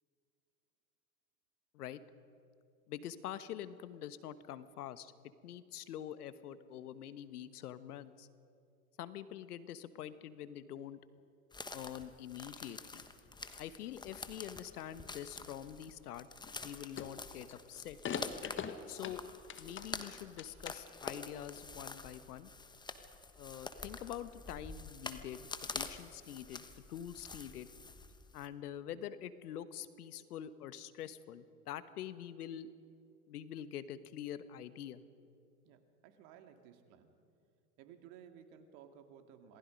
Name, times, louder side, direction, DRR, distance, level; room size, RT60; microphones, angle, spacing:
voice 1, 2.9-5.1 5.4-8.3 9.0-11.0 11.7-13.0 13.6-16.3 16.6-18.0 18.9-19.2 19.6-22.5 23.4-27.7 28.3-32.7 33.3-35.0, left 10 dB, 75° left, 13 dB, 1.3 m, -45 dB
sound 1, 11.5-28.5, left 3 dB, 10° left, 1.2 m, -47 dB
sound 2, 12.4-13.1 13.5-15.1 15.4-15.9 16.4-16.7 17.0-17.5 18.0-20.0 20.3-21.0, left 7 dB, 25° left, 1.5 m, -43 dB
voice 2, 35.6-37.1 37.8-39.6, right 8 dB, 50° right, 6 dB, 2.4 m, -57 dB
27.5 x 19.5 x 5.3 m, 2.5 s
hypercardioid pair, 100°, 47 cm